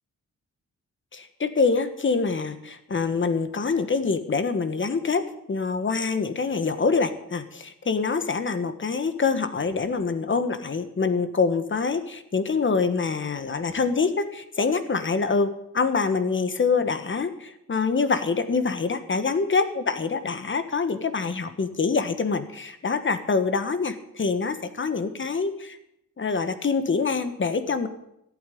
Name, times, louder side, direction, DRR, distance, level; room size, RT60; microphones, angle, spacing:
voice 1, 1.1-25.8 26.2-27.9, left 4 dB, 40° left, 10 dB, 1.4 m, -25 dB
15.0 x 8.8 x 8.5 m, 0.80 s
wide cardioid pair, 115°, 30 cm